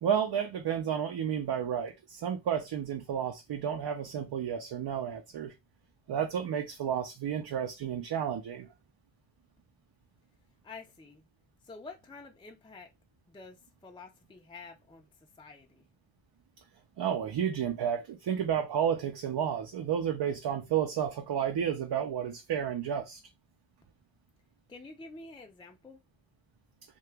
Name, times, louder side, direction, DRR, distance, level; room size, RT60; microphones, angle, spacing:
voice 1, 0.0-5.5 6.1-8.7 17.0-23.2, right 8 dB, 55° right, 0.6 m, -31 dB
voice 2, 10.6-11.2 11.6-12.9 13.3-15.1 15.4-15.8 24.7-26.0, left 3 dB, 10° left, 0.5 m, -48 dB
2.8 x 2.3 x 3.3 m
cardioid pair, 95°, 48 cm